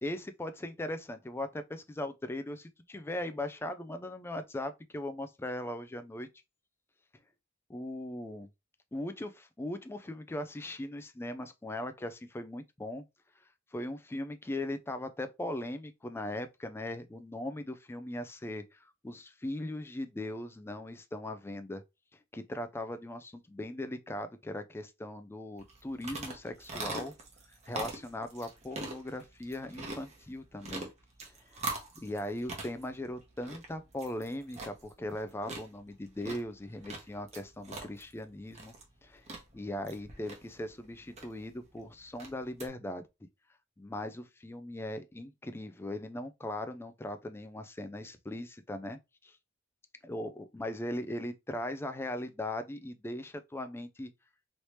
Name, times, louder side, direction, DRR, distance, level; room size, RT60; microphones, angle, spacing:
voice 1, 0.0-6.3 7.7-8.5 8.9-13.1 13.7-21.8 22.3-27.1 27.7-30.9 31.2-31.6 32.0-38.7 39.0-39.3 39.5-43.0 43.8-49.4 50.0-54.1, left 1 dB, 10° left, 0.3 m, -39 dB
sound 1, 25.6-42.7, right 2 dB, 35° right, 0.9 m, -44 dB
3.2 x 2.8 x 3.0 m
head